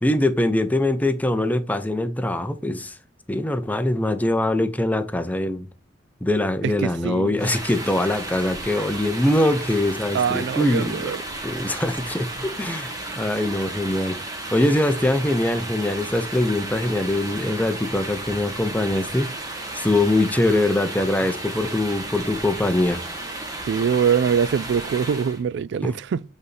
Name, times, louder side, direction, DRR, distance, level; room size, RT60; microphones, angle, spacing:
voice 1, 0.0-2.9 3.3-5.7 6.2-11.1 11.4-14.2 14.5-19.3 19.7-23.0, left 1 dB, 10° left, 0.6 m, -23 dB
voice 2, 6.6-7.4 10.1-11.2 23.7-26.2, right 7 dB, 65° right, 0.3 m, -23 dB
sound 1, 7.4-25.4, right 2 dB, 20° right, 1.5 m, -34 dB
7.9 x 4.1 x 3.4 m
head